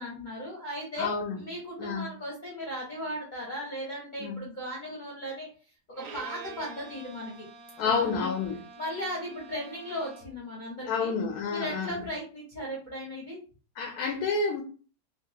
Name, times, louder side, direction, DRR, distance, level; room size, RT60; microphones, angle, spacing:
voice 1, 0.0-5.5 5.9-7.3 8.2-8.3 8.8-11.2 11.4-13.4, equal, 35° left, 0.8 m, -37 dB
voice 2, 1.0-1.4 1.8-2.1 4.2-4.4 7.8-8.6 10.9-12.0 13.8-14.6, left 5 dB, 75° left, 1.0 m, -29 dB
Bowed string instrument, 5.9-10.5, right 5 dB, 70° right, 0.9 m, -47 dB
2.9 x 2.8 x 2.8 m
omnidirectional pair, 1.8 m